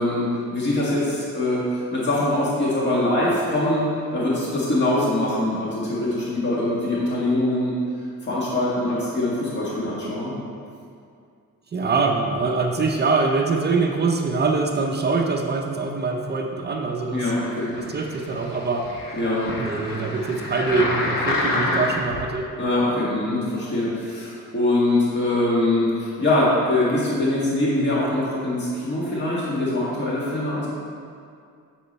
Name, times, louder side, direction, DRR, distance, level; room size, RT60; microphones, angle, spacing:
voice 1, 0.0-7.7 8.2-10.3 17.1-17.7 19.1-19.5 22.6-30.7, left 1 dB, 30° left, -7 dB, 1.7 m, -23 dB
voice 2, 11.7-17.3 17.8-18.9 19.6-22.5, right 4 dB, 30° right, 2 dB, 0.5 m, -24 dB
sound 1, 17.6-22.2 22.8-22.9, left 1 dB, 80° left, 1.2 m, -28 dB
8.5 x 6.9 x 4.1 m, 2.3 s
wide cardioid pair, 175°, 34 cm